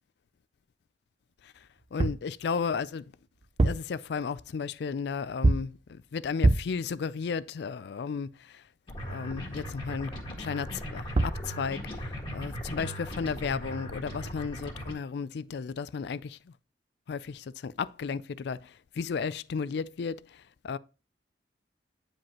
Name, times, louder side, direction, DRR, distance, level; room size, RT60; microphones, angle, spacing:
voice 1, 1.4-3.1 3.6-8.6 9.1-16.5 17.1-20.8, left 5 dB, 70° left, 0.4 m, -34 dB
sound 1, 1.8-2.3 3.4-4.0 5.4-5.8 6.4-6.8 10.9-11.0 11.2-11.5, right 2 dB, 35° right, 0.4 m, -25 dB
sound 2, 8.9-14.9, equal, 30° left, 1.7 m, -38 dB
9.4 x 5.1 x 2.8 m
head